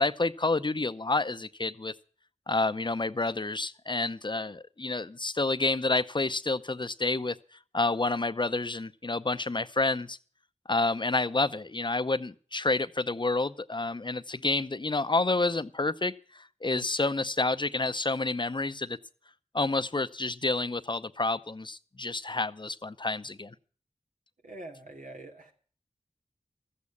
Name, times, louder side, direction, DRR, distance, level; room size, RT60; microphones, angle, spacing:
voice 1, 0.0-1.9 2.5-7.4 7.7-10.2 10.7-19.0 19.5-23.5, left 3 dB, 35° left, 0.7 m, -29 dB
voice 2, 24.4-25.5, right 2 dB, 90° right, 2.6 m, -44 dB
13.5 x 8.5 x 8.4 m
cardioid pair, 40°, 13 cm